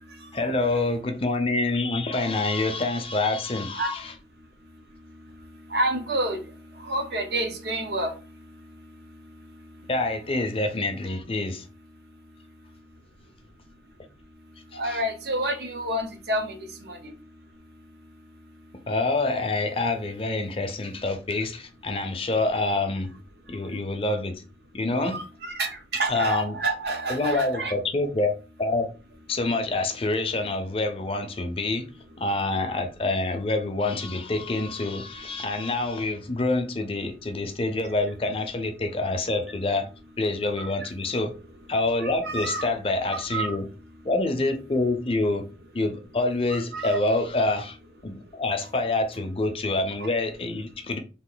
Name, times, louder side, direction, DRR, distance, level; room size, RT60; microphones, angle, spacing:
voice 1, 0.3-4.1 9.9-11.7 14.7-15.0 18.9-23.1 23.5-24.4 24.7-25.2 26.1-26.6 27.1-28.9 29.3-31.9 32.2-39.9 40.2-41.3 41.7-43.7 44.0-45.5 45.7-47.8 48.0-51.0, left 2 dB, 30° left, 0.5 m, -26 dB
voice 2, 5.7-6.4 6.9-8.1 14.7-16.6 16.9-17.0 25.1-27.7 40.6-40.7 42.0-42.6 43.1-43.5 46.5-47.0, right 1 dB, 65° right, 0.8 m, -28 dB
3.0 x 2.5 x 3.9 m
head